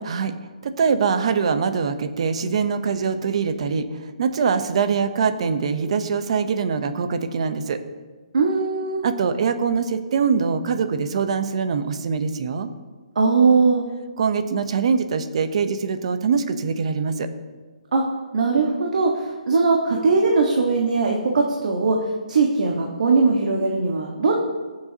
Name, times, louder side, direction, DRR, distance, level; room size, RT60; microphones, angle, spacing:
voice 1, 0.6-7.8 9.0-12.7 14.2-17.3, right 5 dB, 50° right, 9 dB, 0.9 m, -23 dB
voice 2, 8.3-9.0 13.1-13.8 17.9-18.0 18.3-22.0 22.3-24.4, right 4 dB, 70° right, 0 dB, 1.5 m, -20 dB
22.0 x 7.7 x 2.9 m, 1.4 s
hypercardioid pair, 165°, 4 cm